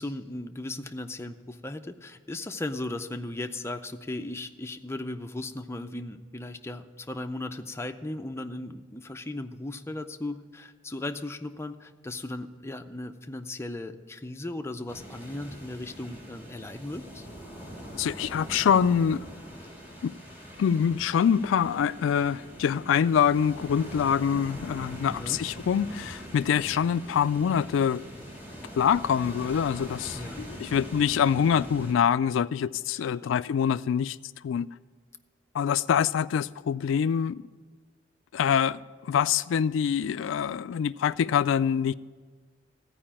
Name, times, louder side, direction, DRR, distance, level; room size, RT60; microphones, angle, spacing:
voice 1, 0.0-17.3 25.0-25.4 30.1-30.4 33.0-33.3, left 2 dB, 15° left, 0.5 m, -37 dB
sound 1, 14.9-31.9, equal, 10° right, 1.9 m, -43 dB
voice 2, 17.9-19.2 20.0-20.1 20.6-28.0 28.8-34.2 34.4-34.7 35.5-37.4 38.3-41.9, left 8 dB, 75° left, 0.3 m, -25 dB
14.5 x 4.9 x 8.7 m
head